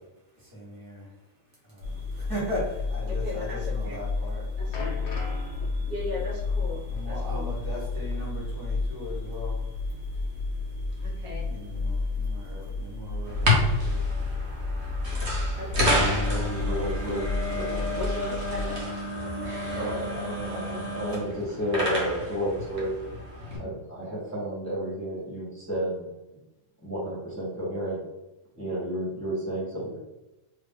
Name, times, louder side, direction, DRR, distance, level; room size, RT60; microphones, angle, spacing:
voice 1, 0.4-1.1 1.7-4.4 6.9-9.5 11.5-14.0, left 1 dB, 15° right, -7 dB, 1.3 m, -38 dB
sound 1, 1.8-18.8, left 3 dB, 85° right, 1.5 m, -31 dB
voice 2, 3.1-4.0 4.6-5.1 5.8-7.5 11.0-11.5 15.0-15.1 15.6-16.5 17.9-18.8 20.5-20.8, left 1 dB, 70° right, -5 dB, 1.5 m, -37 dB
sound 2, 4.7-9.0 9.3-9.4 10.2-10.3, left 3 dB, 85° left, 0.3 m, -43 dB
sound 3, 13.2-23.6, left 1 dB, 50° right, 1.1 m, -29 dB
voice 3, 16.2-17.2 17.5-18.0 19.7-22.9 23.6-26.1 26.8-28.0 28.6-30.0, equal, 10° left, -9 dB, 1.1 m, -32 dB
2.9 x 2.8 x 3.6 m, 1.0 s
omnidirectional pair, 1.7 m